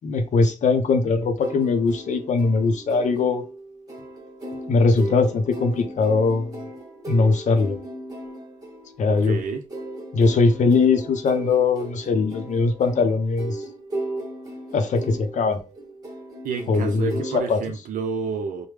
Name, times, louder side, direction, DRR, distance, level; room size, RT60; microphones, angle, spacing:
voice 1, 0.0-3.4 4.7-6.6 7.1-7.8 9.0-9.4 10.1-13.6 14.7-15.6 16.7-17.6, left 4 dB, 70° left, 0.6 m, -21 dB
sound 1, 1.4-17.4, right 1 dB, 30° right, 1.1 m, -36 dB
voice 2, 9.0-9.6 16.4-18.7, right 5 dB, 85° right, 0.4 m, -29 dB
3.1 x 2.1 x 3.3 m
cardioid pair, 110°, 13 cm